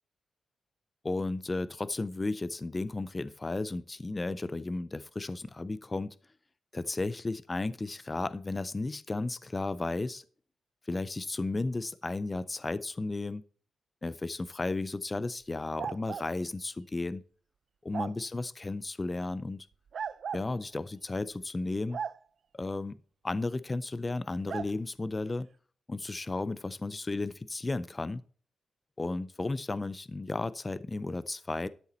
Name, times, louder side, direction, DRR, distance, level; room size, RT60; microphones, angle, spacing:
voice 1, 1.0-6.1 6.7-10.2 10.9-13.4 14.0-17.2 17.8-19.7 20.3-22.0 22.5-22.9 23.2-25.5 25.9-28.2 29.0-31.7, left 2 dB, 20° left, 16 dB, 0.5 m, -34 dB
sound 1, 15.8-16.3 17.9-18.2 19.9-20.5 21.9-22.2 24.5-24.7, right 7 dB, 55° right, 0.4 m, -36 dB
12.5 x 7.0 x 4.3 m, 0.43 s
wide cardioid pair, 140°, 0 cm